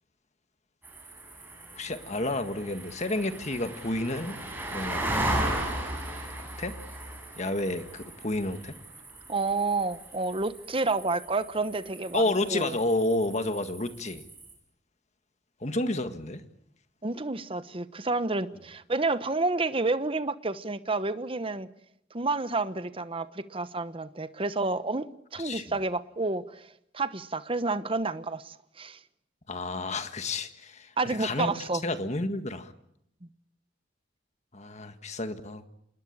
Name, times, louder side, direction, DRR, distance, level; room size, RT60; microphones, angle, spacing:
sound 1, 0.8-14.5, right 1 dB, 10° right, 7.5 m, -36 dB
voice 1, 1.7-4.4 4.7-5.1 6.6-6.8 7.4-8.8 12.1-14.2 15.6-16.4 25.4-25.6 29.5-31.5 31.8-32.7 34.5-35.7, left 2 dB, 35° left, 1.7 m, -30 dB
voice 2, 9.3-12.2 12.5-12.8 17.0-21.7 22.1-29.0 31.0-31.8, right 3 dB, 30° right, 1.0 m, -30 dB
27.0 x 20.5 x 8.7 m
head